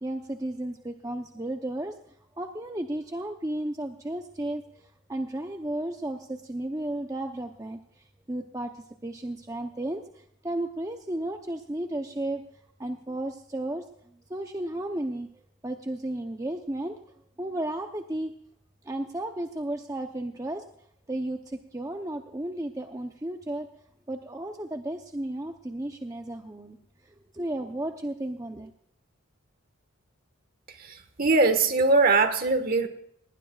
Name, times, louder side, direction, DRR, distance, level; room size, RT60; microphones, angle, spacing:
voice 1, 0.0-2.0 2.4-12.4 12.8-13.8 14.3-17.0 17.4-18.3 18.8-20.6 21.1-23.7 24.1-26.8 27.0-28.7, right 1 dB, 15° right, 4 dB, 0.7 m, -34 dB
voice 2, 30.8-32.9, right 3 dB, 45° right, 8 dB, 1.5 m, -22 dB
20.0 x 19.0 x 2.4 m, 0.70 s
head